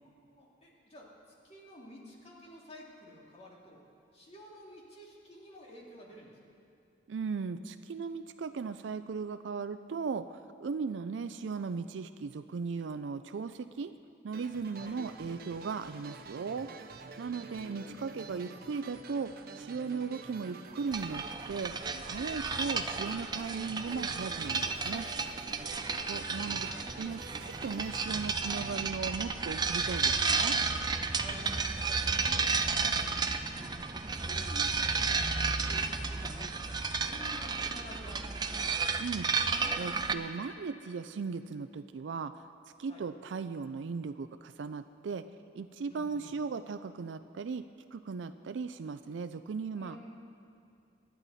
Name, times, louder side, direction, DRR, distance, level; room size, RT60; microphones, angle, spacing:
voice 1, 0.3-3.8 4.1-6.4 14.7-15.0 17.0-18.6 22.4-23.0 26.0-26.9 31.1-33.8 34.2-38.4 42.9-43.0 45.9-46.3 49.7-50.0, equal, 35° left, -3 dB, 2.6 m, -52 dB
voice 2, 7.1-13.9 14.2-16.7 17.2-19.3 19.6-21.7 22.1-25.1 26.1-26.7 27.0-27.2 27.6-30.6 39.0-42.3 42.8-45.3 45.5-47.6 47.9-50.0, right 5 dB, 75° right, 10 dB, 0.4 m, -37 dB
sound 1, 14.3-29.2, right 3 dB, 55° right, 0.8 m, -48 dB
sound 2, 20.9-40.1, right 4 dB, 25° right, 0.6 m, -32 dB
24.5 x 10.5 x 4.2 m, 2.5 s
head